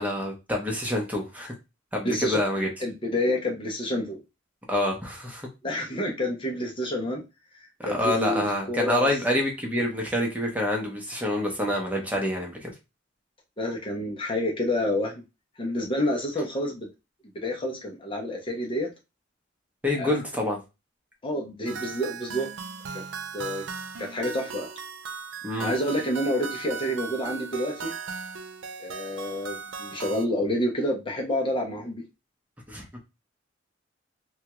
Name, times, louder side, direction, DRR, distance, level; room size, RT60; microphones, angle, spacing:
voice 1, 0.0-1.5 1.9-2.7 4.7-5.5 7.8-12.7 19.8-20.6 25.4-25.7 32.7-32.8, left 1 dB, 10° right, 0 dB, 0.8 m, -27 dB
voice 2, 2.0-2.4 2.8-4.2 5.6-7.2 7.5-9.4 13.6-15.2 15.6-16.9 17.4-18.9 19.9-20.2 21.2-22.5 22.9-23.0 23.3-23.6 24.0-24.7 25.6-27.9 28.8-32.0, left 1 dB, 25° left, 0 dB, 0.7 m, -28 dB
sound 1, 21.7-30.3, right 5 dB, 80° right, 0.5 m, -37 dB
3.4 x 2.3 x 2.9 m, 0.25 s
head